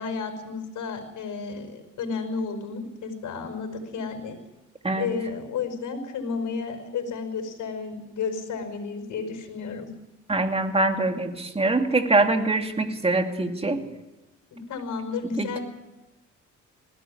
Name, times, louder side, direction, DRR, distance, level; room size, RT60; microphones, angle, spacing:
voice 1, 0.0-4.4 4.9-9.9 14.5-15.6, left 5 dB, 75° left, 6 dB, 5.3 m, -32 dB
voice 2, 10.3-13.8 15.4-15.6, right 2 dB, 20° right, 5 dB, 2.8 m, -24 dB
20.5 x 16.5 x 10.0 m, 1.0 s
cardioid pair, 90°, 30 cm